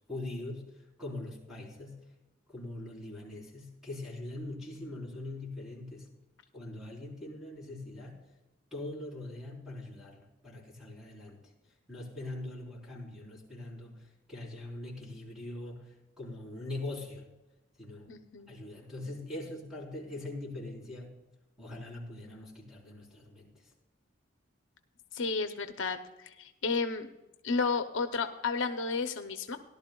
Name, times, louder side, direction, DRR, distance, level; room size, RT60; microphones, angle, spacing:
voice 1, 0.1-0.7 1.0-2.0 2.5-6.1 6.5-8.2 8.7-11.4 11.9-14.0 14.3-15.8 16.2-17.3 17.8-18.1 18.5-21.1 21.6-23.5, left 2 dB, 5° right, -4 dB, 3.9 m, -42 dB
voice 2, 18.1-18.5 25.1-26.0 26.4-27.1 27.4-29.6, left 4 dB, 65° left, 8 dB, 0.7 m, -32 dB
17.5 x 11.5 x 2.3 m, 1.0 s
head